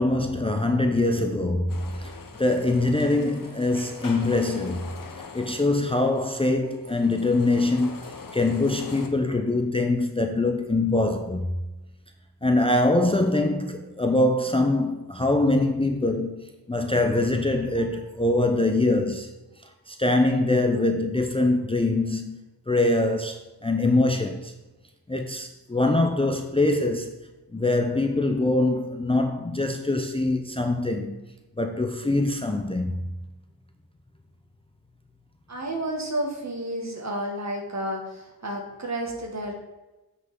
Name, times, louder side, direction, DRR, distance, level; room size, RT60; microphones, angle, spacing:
voice 1, 0.0-2.1 2.4-4.9 5.3-11.5 12.4-19.3 19.9-22.4 22.7-24.5 25.1-27.1 27.5-31.2 31.6-33.0, left 2 dB, 15° left, 0.5 m, -23 dB
sound 1, 1.7-9.1, left 4 dB, 60° left, 0.9 m, -42 dB
voice 2, 35.5-39.5, right 1 dB, 45° right, 1.7 m, -31 dB
7.6 x 6.1 x 3.7 m
wide cardioid pair, 120°, 38 cm